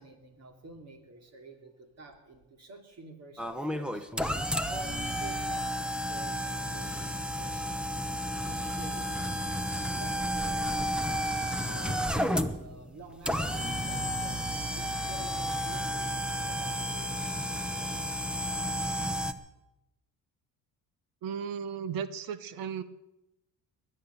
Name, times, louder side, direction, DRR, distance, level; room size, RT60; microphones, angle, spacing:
voice 1, 0.0-4.1 4.7-7.8 8.4-9.3 10.0-14.5 14.7-16.1 16.4-18.1, right 2 dB, 45° right, 5 dB, 2.8 m, -50 dB
sound 1, 3.4-19.3, equal, 5° right, 0.8 m, -32 dB
voice 2, 21.2-22.8, right 7 dB, 65° right, 15 dB, 0.9 m, -35 dB
21.0 x 8.7 x 6.9 m, 0.94 s
cardioid pair, 110°, 37 cm